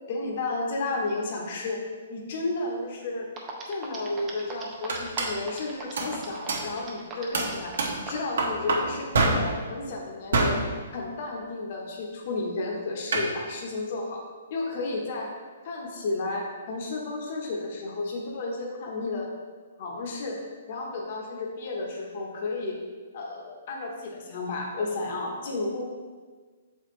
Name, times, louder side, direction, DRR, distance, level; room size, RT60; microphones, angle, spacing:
voice 1, 0.1-1.8 2.1-3.3 3.7-7.7 8.0-10.6 10.9-14.2 14.5-15.3 15.6-19.3 19.8-20.4 20.7-22.8 23.1-25.8, left 3 dB, 40° left, -1 dB, 0.9 m, -32 dB
sound 1, 3.0-3.1 3.4-8.3, right 4 dB, 15° right, 0.6 m, -39 dB
sound 2, 4.4-4.5 4.9-5.4 6.0-6.2 6.5-6.7 7.3-8.1 8.4-9.6 10.3-10.7 13.1-13.3, right 2 dB, 75° right, 1.1 m, -26 dB
7.3 x 4.3 x 3.1 m, 1.5 s
hypercardioid pair, 170°, 0 cm